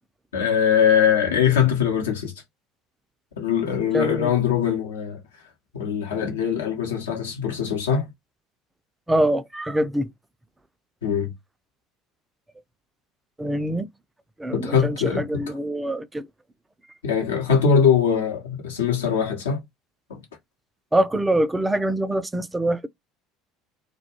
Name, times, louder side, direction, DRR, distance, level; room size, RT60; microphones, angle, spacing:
voice 1, 0.3-2.3 3.4-5.2 5.7-8.1 11.0-11.3 14.5-15.4 17.0-19.6 20.1-20.2, left 7 dB, 75° left, 0.8 m, -22 dB
voice 2, 3.9-4.3 9.1-10.1 13.4-13.9 14.4-16.3 20.9-22.9, right 1 dB, 10° right, 0.4 m, -24 dB
2.2 x 2.2 x 2.8 m
figure-of-eight pair, 65°, 0 cm